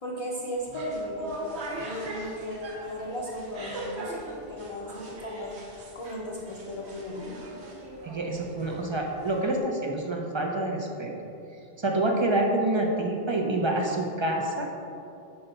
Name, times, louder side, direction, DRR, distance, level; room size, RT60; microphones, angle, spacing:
voice 1, 0.0-4.2 4.5-7.4, equal, 35° left, -5 dB, 0.7 m, -36 dB
sound 1, 0.6-9.6, right 1 dB, 75° right, 1.1 m, -40 dB
voice 2, 8.0-11.1 11.8-14.7, right 1 dB, 40° right, 1 dB, 0.4 m, -27 dB
5.6 x 3.9 x 5.5 m, 2.7 s
omnidirectional pair, 1.2 m